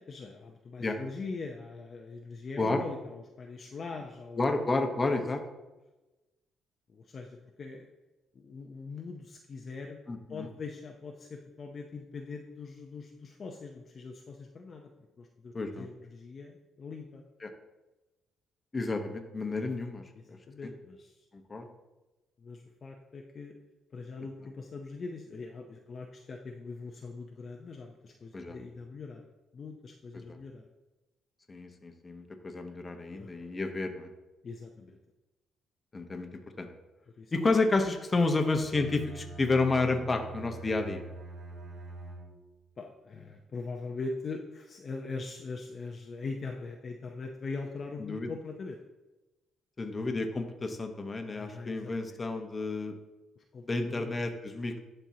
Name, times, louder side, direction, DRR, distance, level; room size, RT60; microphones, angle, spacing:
voice 1, 0.0-4.6 6.9-7.9 8.3-10.0 10.3-14.9 15.2-17.2 20.2-21.3 22.4-23.6 23.9-29.2 29.5-30.6 33.1-33.5 34.4-35.0 37.2-37.3 42.8-48.8 51.3-52.2 53.4-54.1, left 4 dB, 45° left, 2 dB, 0.6 m, -42 dB
voice 2, 4.4-5.4 10.1-10.5 15.5-15.9 17.4-17.5 18.7-20.0 20.3-20.4 20.6-20.7 21.5-21.7 28.3-28.6 30.1-30.4 31.5-34.1 35.9-36.7 37.3-41.0 48.0-48.3 49.8-52.9 53.7-54.8, left 3 dB, 30° left, 5 dB, 1.0 m, -30 dB
Bowed string instrument, 38.6-42.6, right 3 dB, 35° right, 2.6 m, -45 dB
11.5 x 4.4 x 2.8 m, 1.1 s
cardioid pair, 90°, 0 cm